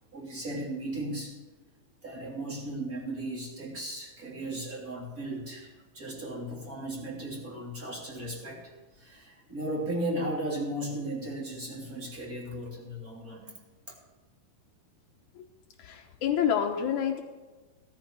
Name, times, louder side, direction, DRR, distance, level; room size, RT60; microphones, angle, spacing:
voice 1, 0.1-1.4 2.0-8.6 9.0-13.5, right 1 dB, 25° right, -2 dB, 3.1 m, -36 dB
voice 2, 15.8-17.2, left 8 dB, 85° left, 3 dB, 1.6 m, -28 dB
17.5 x 12.0 x 4.7 m, 1.2 s
omnidirectional pair, 4.7 m